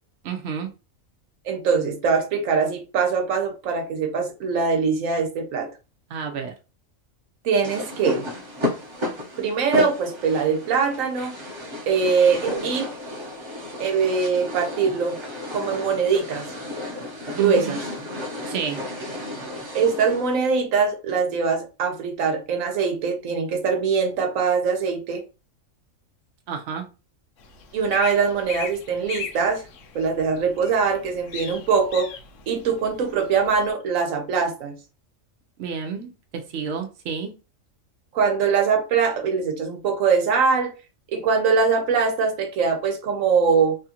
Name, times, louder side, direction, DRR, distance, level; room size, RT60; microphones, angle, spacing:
voice 1, 0.2-0.7 6.1-6.5 17.4-17.8 18.5-18.8 26.5-26.9 35.6-37.3, right 6 dB, 70° right, 0.9 m, -30 dB
voice 2, 1.4-5.7 7.4-8.3 9.4-11.3 11.9-12.9 13.8-15.2 15.5-16.5 17.2-17.8 19.7-25.2 27.7-29.7 29.9-32.1 32.5-34.7 38.1-40.7 41.1-43.8, right 5 dB, 85° right, 1.1 m, -22 dB
sound 1, 7.6-20.4, left 2 dB, 25° right, 0.7 m, -33 dB
sound 2, 27.4-33.7, left 6 dB, 75° left, 1.0 m, -39 dB
3.1 x 2.4 x 2.8 m
omnidirectional pair, 1.4 m